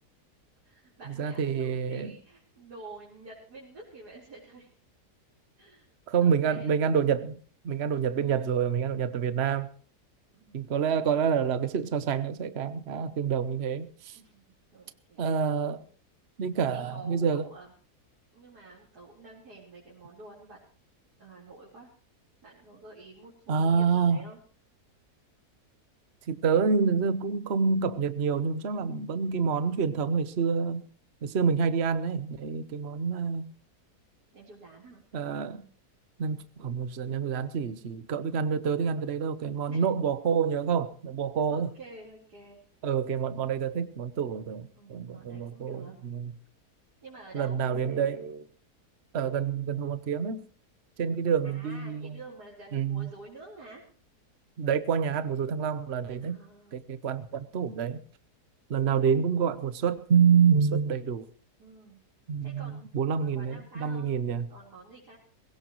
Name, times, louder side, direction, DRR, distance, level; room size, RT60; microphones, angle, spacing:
voice 1, 0.6-4.7 5.6-5.9 6.1-6.7 10.3-10.7 14.1-14.4 14.7-15.3 16.6-17.7 18.3-20.6 21.2-21.9 22.4-24.4 34.3-35.0 39.7-39.8 41.5-42.6 44.8-46.0 47.0-47.6 51.4-53.8 56.2-56.8 58.7-59.3 61.6-62.0 62.4-62.9 63.2-64.1 64.5-65.2, right 3 dB, 80° right, -6 dB, 4.7 m, -49 dB
voice 2, 1.2-2.1 6.1-7.4 7.6-9.7 10.5-14.2 15.2-15.8 16.4-17.5 23.5-24.2 26.3-30.9 31.2-33.5 35.1-35.7 36.2-41.7 42.8-46.3 47.3-48.5 49.1-50.4 51.0-52.2 52.7-53.1 54.6-56.4 56.7-58.0 58.7-61.3 62.3-64.5, right 6 dB, 45° right, 12 dB, 1.2 m, -27 dB
21.0 x 17.0 x 3.1 m, 0.43 s
omnidirectional pair, 1.7 m